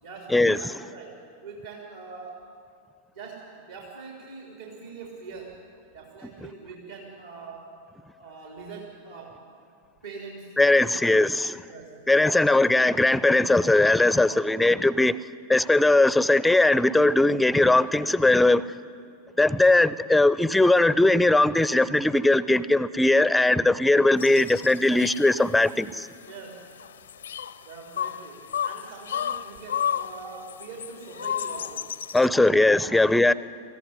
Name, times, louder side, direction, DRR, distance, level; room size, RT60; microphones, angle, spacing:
voice 1, 0.0-2.5 3.1-5.6 5.9-7.8 8.2-9.5 10.0-10.5 11.7-12.5 14.3-14.4 26.3-26.7 27.6-31.9 32.8-33.3, right 4 dB, 70° right, 3.3 m, -43 dB
voice 2, 10.6-11.6 12.1-15.2 15.5-18.6 19.4-26.1 32.1-33.3, left 2 dB, 5° left, 0.6 m, -20 dB
sound 1, 24.2-32.3, left 9 dB, 70° left, 0.7 m, -33 dB
23.0 x 15.0 x 9.9 m
figure-of-eight pair, 90°, 0 cm